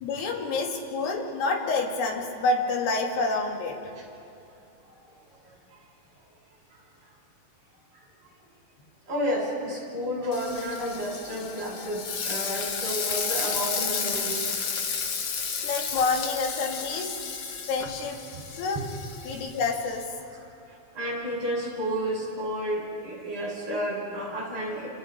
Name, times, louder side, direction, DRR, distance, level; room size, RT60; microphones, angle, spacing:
voice 1, 0.0-3.8 15.6-17.1 17.7-18.2 18.6-18.8 19.2-20.1, left 3 dB, 80° left, 1 dB, 4.0 m, -28 dB
voice 2, 9.1-14.4 14.9-15.2 18.3-18.4 20.9-24.9, equal, 40° right, -3 dB, 7.2 m, -31 dB
Frying (food), 10.3-20.0, left 6 dB, 65° left, 1.5 m, -32 dB
29.5 x 27.5 x 4.4 m, 2.9 s
omnidirectional pair, 4.6 m